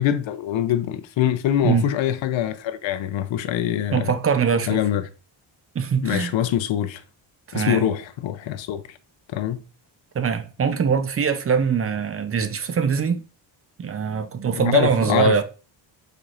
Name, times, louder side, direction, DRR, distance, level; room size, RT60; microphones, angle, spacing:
voice 1, 0.0-4.1 4.7-5.0 6.0-7.0 7.5-9.0 9.3-9.6 14.5-15.4, left 11 dB, 70° left, 0.6 m, -24 dB
voice 2, 3.9-4.8 5.7-6.3 7.5-7.9 10.1-13.2 13.8-15.4, right 6 dB, 30° right, 0.5 m, -22 dB
4.7 x 4.3 x 2.5 m
cardioid pair, 130°, 48 cm